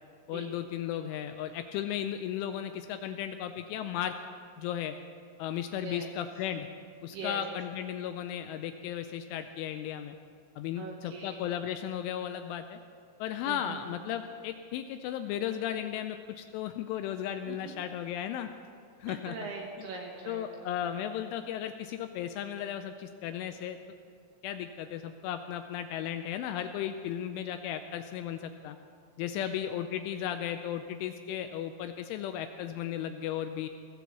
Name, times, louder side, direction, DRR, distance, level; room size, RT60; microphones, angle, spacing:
voice 1, 0.3-4.1 4.6-5.0 5.4-6.7 7.0-10.2 10.6-12.8 13.2-18.5 19.0-19.4 20.3-23.8 24.4-28.8 29.2-33.7, left 10 dB, 85° left, 7 dB, 2.8 m, -35 dB
voice 2, 5.8-6.1 7.0-7.4 10.8-11.5 13.4-13.8 17.5-17.8 19.1-20.9 29.4-29.5, right 4 dB, 70° right, 0 dB, 2.7 m, -42 dB
22.0 x 17.5 x 3.1 m, 2.2 s
omnidirectional pair, 5.9 m